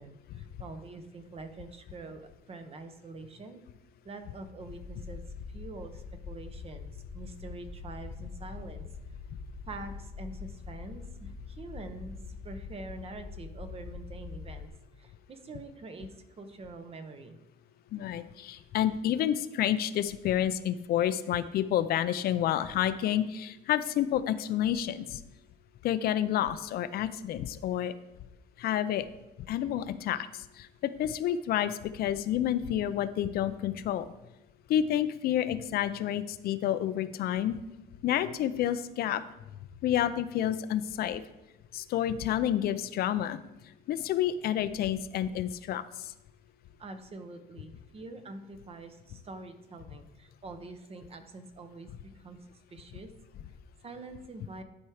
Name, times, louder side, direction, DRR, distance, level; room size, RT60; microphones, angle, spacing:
voice 1, 0.0-3.6 4.0-5.2 5.5-9.2 9.7-14.7 15.0-16.1 16.4-17.4 46.8-52.4 52.7-53.1 53.8-54.6, right 3 dB, 35° right, 8 dB, 0.9 m, -45 dB
sound 1, 4.7-14.7, left 5 dB, 50° left, 1.1 m, -44 dB
voice 2, 17.9-25.2 25.8-27.9 28.6-29.1 29.4-34.1 34.7-37.6 38.0-39.2 39.8-41.2 41.7-43.4 43.9-46.1, left 11 dB, 65° left, 12 dB, 0.5 m, -29 dB
11.5 x 4.5 x 4.9 m, 0.97 s
cardioid pair, 110°, 17 cm